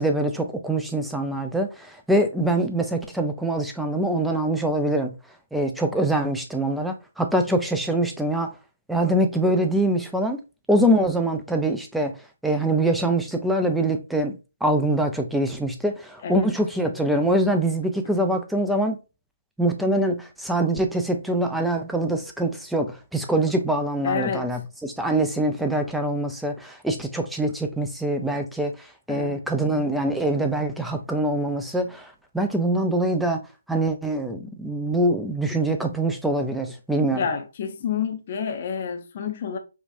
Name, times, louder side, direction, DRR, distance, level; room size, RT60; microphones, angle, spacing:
voice 1, 0.0-5.1 5.5-8.5 8.9-10.4 10.7-12.2 12.4-14.3 14.6-19.0 19.6-37.3, right 1 dB, ahead, 0.4 m, -24 dB
voice 2, 24.0-24.5 29.1-29.4 37.1-39.6, left 7 dB, 40° left, 0.7 m, -29 dB
4.9 x 2.3 x 2.5 m
hypercardioid pair, 150°, 0 cm